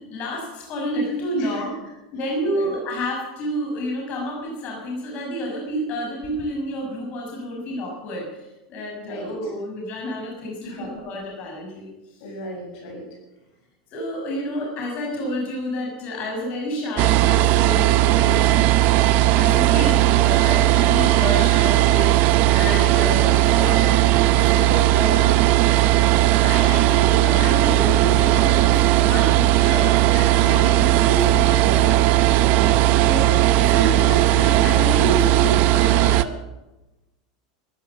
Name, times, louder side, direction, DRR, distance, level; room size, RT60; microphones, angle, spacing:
voice 1, 0.0-1.8 2.1-8.3 8.7-11.9 13.9-18.1 19.4-22.2 22.5-24.0 24.4-25.4 26.4-32.0 32.4-32.5 33.0-36.3, equal, 45° left, 0 dB, 6.1 m, -29 dB
voice 2, 9.0-9.3 10.6-10.9 12.2-13.0 18.2-18.5 30.4-30.8 32.3-32.8, equal, 65° left, 1 dB, 6.6 m, -34 dB
sound 1, 17.0-36.2, right 14 dB, 50° right, 0.8 m, -17 dB
14.5 x 13.5 x 7.4 m, 1.0 s
supercardioid pair, 125°, 4 cm